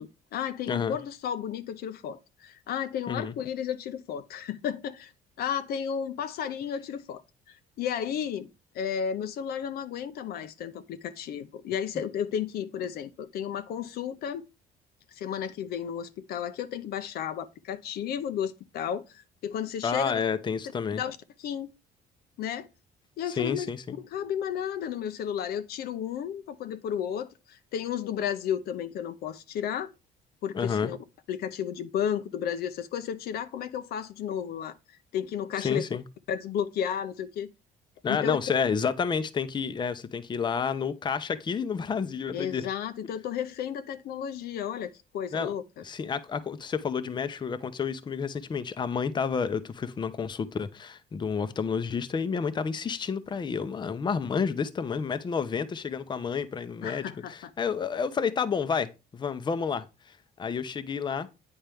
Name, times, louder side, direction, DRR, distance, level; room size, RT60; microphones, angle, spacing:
voice 1, 0.0-5.1 5.4-7.2 7.5-8.5 8.7-14.4 15.1-20.2 20.9-21.7 22.4-22.7 23.2-23.7 24.1-29.9 30.4-31.0 31.3-34.8 35.1-35.8 36.3-37.5 38.1-38.4 42.3-45.8 56.8-57.5, left 8 dB, 65° left, 0.6 m, -33 dB
voice 2, 0.7-1.0 3.1-3.3 19.8-21.0 23.3-23.9 30.5-30.9 35.6-36.0 38.0-42.6 45.3-45.5 45.8-57.0 57.3-59.8 60.4-61.3, left 6 dB, 25° left, 0.6 m, -30 dB
8.9 x 4.4 x 3.4 m
cardioid pair, 110°, 17 cm